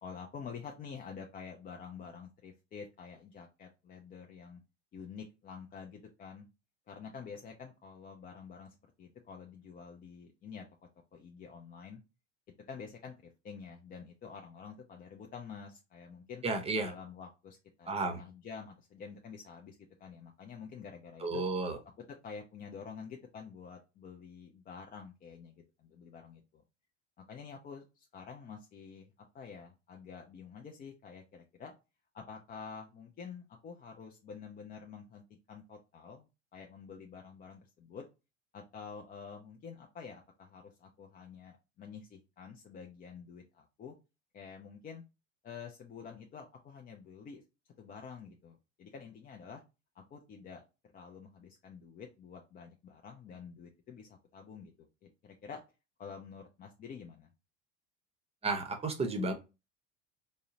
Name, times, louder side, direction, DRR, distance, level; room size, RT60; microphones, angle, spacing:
voice 1, 0.0-4.6 4.9-6.5 6.9-10.7 11.1-12.0 12.7-16.4 16.8-21.4 22.2-26.6 27.3-31.7 32.1-38.1 38.5-43.9 44.3-45.0 45.4-47.4 47.8-49.6 49.9-50.6 50.9-55.6 56.0-57.3, left 6 dB, 25° left, 2 dB, 0.4 m, -48 dB
voice 2, 16.4-16.9 17.9-18.2 21.2-21.8 58.4-59.3, right 3 dB, 15° right, 5 dB, 0.8 m, -32 dB
3.6 x 2.0 x 2.7 m, 0.28 s
hypercardioid pair, 75°, 36 cm